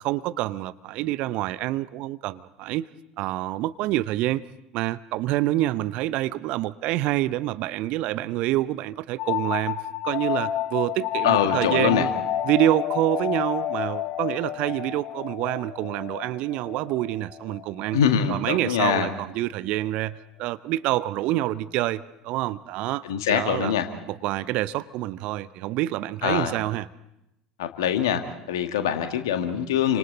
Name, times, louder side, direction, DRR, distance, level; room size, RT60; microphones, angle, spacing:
voice 1, 0.0-2.9 3.2-4.4 4.7-12.1 12.4-18.0 18.3-23.7 24.1-26.9, right 15 dB, 50° right, 16 dB, 0.7 m, -27 dB
sound 1, 9.2-18.6, left 12 dB, 45° left, 1.1 m, -30 dB
voice 2, 11.2-12.1 17.9-19.1 23.0-23.9 26.2-26.5 27.6-30.0, left 9 dB, 65° left, 6 dB, 1.9 m, -24 dB
29.0 x 26.0 x 4.1 m, 0.83 s
figure-of-eight pair, 70°, 2 cm